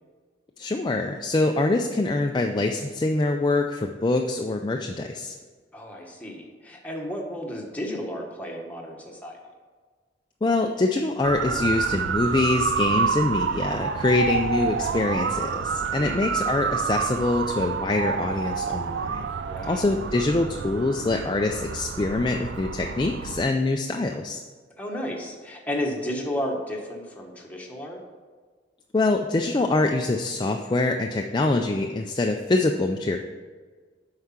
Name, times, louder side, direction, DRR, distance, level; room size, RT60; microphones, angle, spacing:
voice 1, 0.6-5.3 10.4-19.3 19.6-24.4 28.9-33.2, left 2 dB, 25° left, 3 dB, 0.4 m, -24 dB
voice 2, 5.7-9.4 15.9-16.3 19.4-19.9 24.8-28.0, equal, 10° left, -1 dB, 1.3 m, -33 dB
Motor vehicle (road) / Siren, 11.2-23.5, right 6 dB, 70° right, 0.4 m, -28 dB
8.0 x 4.8 x 5.7 m, 1.5 s
head